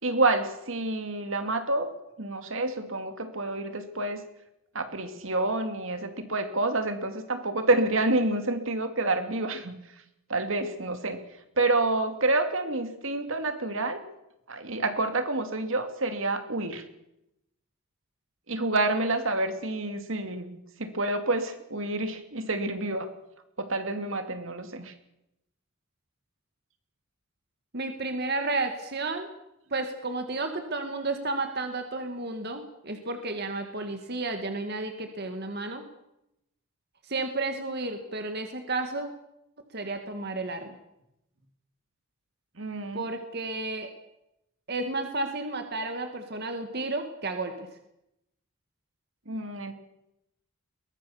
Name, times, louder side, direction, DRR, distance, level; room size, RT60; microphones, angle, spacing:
voice 1, 0.0-1.9 2.2-4.2 4.7-9.8 10.3-11.2 11.6-14.0 14.5-16.8 18.5-23.1 23.6-24.9 42.6-43.0 49.3-49.7, right 2 dB, 65° right, 8 dB, 2.6 m, -28 dB
voice 2, 27.7-29.3 29.7-35.8 37.1-39.1 39.7-40.8 42.9-43.9 44.7-47.7, right 2 dB, 50° right, 6 dB, 1.9 m, -32 dB
22.5 x 19.5 x 7.2 m, 0.85 s
head